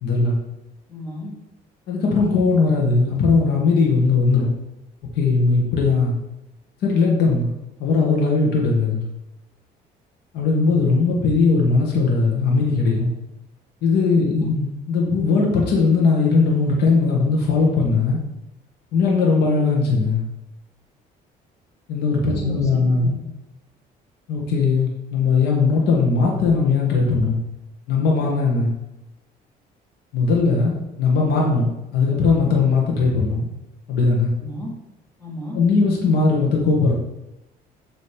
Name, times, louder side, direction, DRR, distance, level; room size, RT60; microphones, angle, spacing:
voice 1, 0.0-0.3 1.9-4.5 5.1-6.1 6.8-7.5 7.8-9.0 10.3-13.1 13.8-18.2 18.9-20.2 21.9-23.2 24.3-27.4 27.9-28.7 30.1-33.4 33.9-34.3 35.5-36.9, left 4 dB, 75° left, -1 dB, 1.3 m, -19 dB
voice 2, 0.9-1.3 14.2-14.5 22.3-22.7 23.0-23.2 34.4-34.7 35.2-35.6, left 1 dB, 15° left, -3 dB, 2.3 m, -34 dB
7.1 x 3.2 x 5.0 m, 0.95 s
cardioid pair, 110°, 17 cm